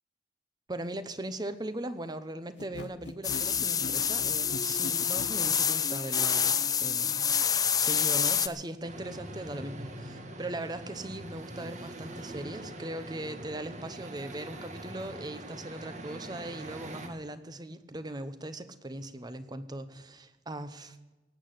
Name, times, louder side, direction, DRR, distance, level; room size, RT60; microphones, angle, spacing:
voice 1, 0.7-7.3 7.8-9.9 10.4-21.1, right 1 dB, 25° right, 12 dB, 0.9 m, -39 dB
sound 1, 2.6-5.4, left 2 dB, 80° left, 0.9 m, -41 dB
sound 2, 3.2-8.5, left 7 dB, 20° left, 0.6 m, -27 dB
sound 3, 8.8-17.1, right 1 dB, 40° right, 1.6 m, -43 dB
17.5 x 8.6 x 7.8 m, 1.1 s
head